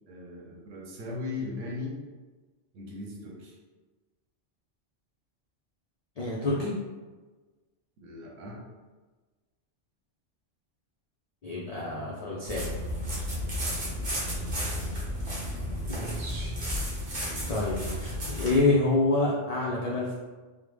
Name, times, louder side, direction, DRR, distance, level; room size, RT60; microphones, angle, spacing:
voice 1, 0.1-2.0 2.7-3.6 8.0-8.6, left 3 dB, 80° right, -2 dB, 1.1 m, -38 dB
voice 2, 6.2-6.8 11.4-12.7 15.9-17.2 17.5-20.1, left 2 dB, 70° left, -5 dB, 0.3 m, -28 dB
sound 1, 12.4-18.6, equal, 45° right, 1.0 m, -32 dB
3.5 x 2.1 x 3.1 m, 1.3 s
omnidirectional pair, 1.3 m